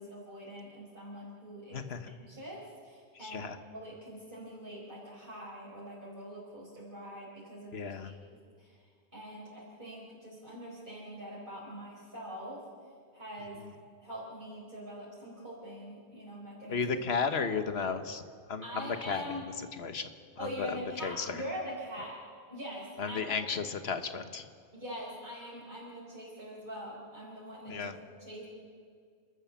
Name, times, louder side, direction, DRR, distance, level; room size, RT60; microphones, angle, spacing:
voice 1, 0.0-7.8 8.0-8.8 9.1-12.6 13.1-13.6 14.0-16.8 18.6-19.5 20.4-22.2 22.5-23.3 24.7-27.9 28.2-28.5, equal, 50° right, -6 dB, 4.8 m, -43 dB
voice 2, 1.7-2.1 3.2-3.6 7.7-8.1 13.6-13.7 16.7-18.2 18.5-19.3 19.6-20.1 20.4-21.4 23.0-24.5 27.7-28.0, left 5 dB, 65° left, 9 dB, 1.5 m, -34 dB
29.0 x 13.5 x 7.3 m, 2.1 s
omnidirectional pair, 1.2 m